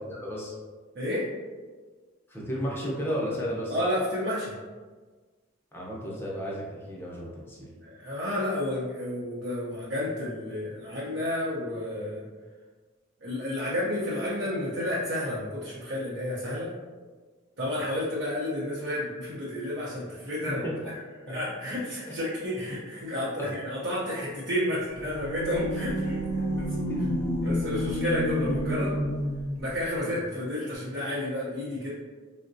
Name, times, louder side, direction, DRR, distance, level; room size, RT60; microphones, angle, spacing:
voice 1, 0.1-0.5 2.3-3.7 5.7-7.7 20.5-20.8 22.1-22.2 23.4-23.5 26.9-27.0, equal, 10° left, -5 dB, 0.6 m, -33 dB
voice 2, 0.9-1.3 3.7-4.5 7.8-12.2 13.2-16.8 17.6-20.6 21.3-26.2 26.6-26.7 27.4-29.0 29.6-31.9, left 1 dB, 60° right, -8 dB, 0.6 m, -31 dB
sound 1, 24.9-29.7, equal, 65° left, 0.6 m, -29 dB
3.6 x 2.1 x 2.5 m, 1.4 s
head